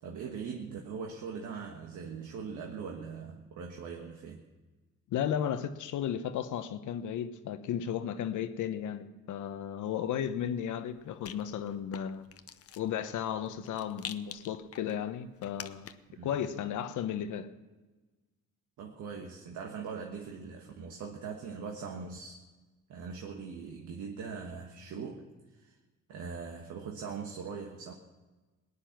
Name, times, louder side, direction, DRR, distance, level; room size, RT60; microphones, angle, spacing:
voice 1, 0.0-4.4 16.1-16.3 18.8-22.4 22.9-25.3 25.5-25.8 26.1-27.9, right 5 dB, 80° right, 1 dB, 1.5 m, -41 dB
voice 2, 5.1-12.3 12.8-15.9 16.2-17.5, left 9 dB, 80° left, 10 dB, 1.1 m, -34 dB
Rattle, 10.1-16.2, left 9 dB, 50° left, 0.8 m, -49 dB
19.0 x 10.0 x 5.9 m, 1.2 s
cardioid pair, 90°, 30 cm